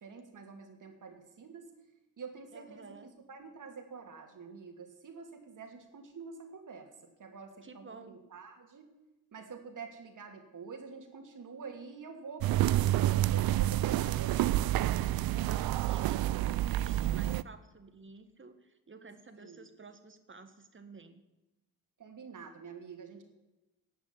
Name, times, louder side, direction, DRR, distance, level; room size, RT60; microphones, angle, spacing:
voice 1, 0.0-1.7 2.2-2.9 3.3-8.9 9.3-14.9 19.4-19.7 22.0-23.2, right 5 dB, 55° right, 5 dB, 2.8 m, -47 dB
voice 2, 2.5-3.1 7.6-8.2 14.9-21.2, right 4 dB, 30° right, 9 dB, 1.6 m, -52 dB
sound 1, 12.4-17.4, right 14 dB, 70° right, 0.5 m, -28 dB
11.5 x 7.0 x 9.6 m, 0.99 s
supercardioid pair, 60°, 37 cm